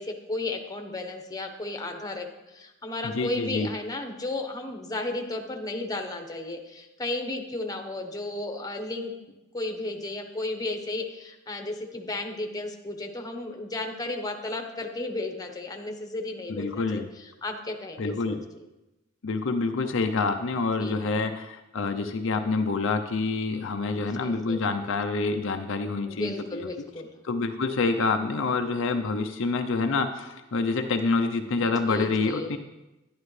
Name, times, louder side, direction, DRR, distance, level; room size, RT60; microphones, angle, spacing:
voice 1, 0.0-9.1 9.5-17.0 17.4-18.4 20.8-21.1 23.9-24.6 26.1-27.1 31.6-32.5, left 2 dB, 15° left, 4 dB, 1.0 m, -34 dB
voice 2, 3.0-3.7 16.5-17.1 18.0-18.4 19.2-26.7 27.2-32.6, left 3 dB, 65° left, 5 dB, 0.6 m, -27 dB
11.5 x 11.0 x 3.2 m, 0.98 s
head